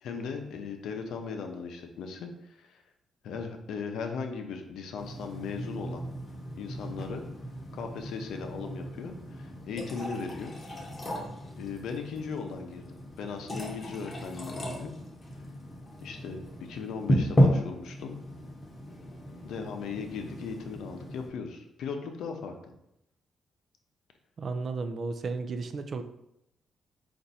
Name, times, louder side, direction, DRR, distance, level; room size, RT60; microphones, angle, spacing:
voice 1, 0.0-2.8 3.2-6.0 6.5-7.2 7.7-10.5 11.6-14.9 16.0-18.2 19.4-22.7, left 5 dB, 80° left, 4 dB, 0.6 m, -38 dB
sound 1, 5.0-21.3, equal, 30° left, 0.9 m, -33 dB
voice 2, 24.4-26.0, right 4 dB, 50° right, 8 dB, 0.4 m, -33 dB
4.4 x 2.6 x 4.0 m, 0.82 s
cardioid pair, 100°, 0 cm